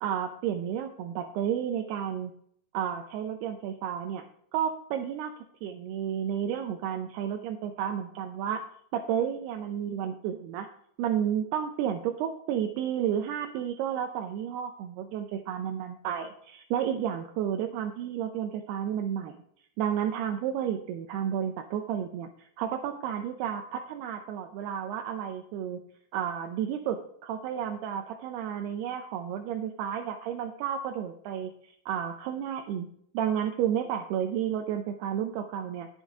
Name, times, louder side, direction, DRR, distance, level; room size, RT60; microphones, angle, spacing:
voice 1, 0.0-2.3 2.7-4.2 4.5-5.3 5.6-8.6 8.9-10.7 11.0-19.4 19.8-25.8 26.1-32.9 33.1-35.9, right 9 dB, 80° right, 5 dB, 2.6 m, -31 dB
10.5 x 7.3 x 4.7 m, 0.66 s
omnidirectional pair, 5.0 m